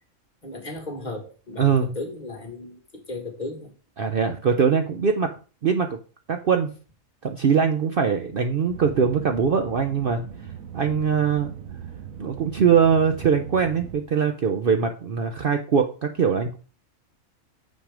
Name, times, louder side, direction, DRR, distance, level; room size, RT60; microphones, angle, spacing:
voice 1, 0.4-3.7, left 2 dB, 35° left, 2.0 m, -35 dB
voice 2, 1.6-1.9 4.0-5.3 5.6-6.0 6.3-6.7 7.2-10.2 10.7-11.5 12.2-16.6, right 6 dB, 50° right, 0.7 m, -22 dB
sound 1, 8.7-14.0, right 8 dB, 90° right, 1.3 m, -39 dB
7.5 x 6.0 x 5.0 m
omnidirectional pair, 1.4 m